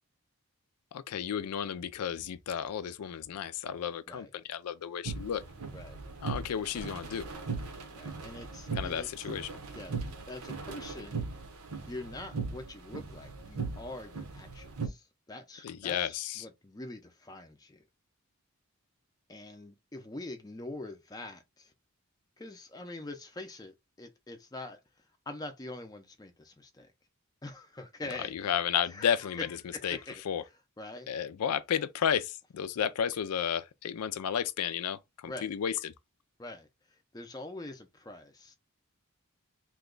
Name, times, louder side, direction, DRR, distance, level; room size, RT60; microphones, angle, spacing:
voice 1, 0.9-5.4 6.2-7.3 8.8-9.5 15.6-16.5 28.3-29.5 29.8-30.0 30.3-30.4 31.1-35.9, left 8 dB, 85° left, 0.4 m, -32 dB
sound 1, 5.0-14.9, right 4 dB, 80° right, 0.9 m, -39 dB
voice 2, 7.9-9.1 9.7-11.2 11.9-17.8 19.3-21.7 22.4-24.8 25.3-26.9 27.4-28.3 28.9-30.2 30.8-31.1 35.3-35.5 36.4-38.6, left 2 dB, 15° left, 0.5 m, -44 dB
3.0 x 2.2 x 3.7 m
head